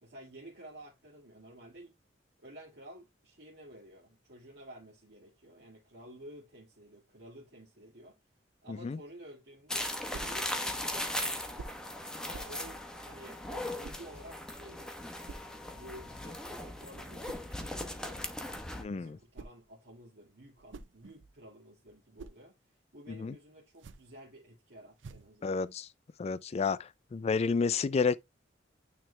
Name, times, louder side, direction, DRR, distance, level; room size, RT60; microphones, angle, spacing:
voice 1, 0.0-1.9 2.4-8.2 8.6-11.5 12.2-15.0 15.7-18.3 18.9-22.6 22.9-25.6, right 1 dB, 60° right, 2.0 m, -52 dB
voice 2, 8.7-9.0 18.8-19.2 23.1-23.3 25.4-25.9 26.2-28.2, left 5 dB, 35° left, 0.3 m, -31 dB
sound 1, 9.7-18.8, left 1 dB, 5° left, 0.9 m, -38 dB
sound 2, 10.1-10.4 11.5-11.9 12.3-12.6 13.8-14.1 15.3-15.5 17.2-17.5 19.1-19.7 20.4-21.4 21.9-22.4 23.7-24.2 25.0-25.4, right 3 dB, 90° right, 0.5 m, -48 dB
9.1 x 3.3 x 3.2 m
head